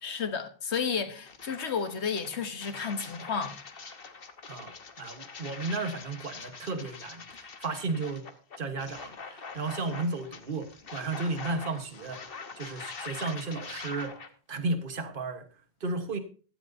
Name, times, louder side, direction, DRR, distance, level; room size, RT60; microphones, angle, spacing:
voice 1, 0.0-3.5, left 6 dB, 80° left, 1.5 m, -32 dB
sound 1, 0.7-0.8 1.2-14.3, left 5 dB, 60° left, 1.4 m, -44 dB
voice 2, 5.0-8.2 8.6-12.2 12.5-14.1 14.5-15.4 15.8-16.2, right 3 dB, 55° right, 1.5 m, -34 dB
15.5 x 13.5 x 2.7 m
omnidirectional pair, 1.1 m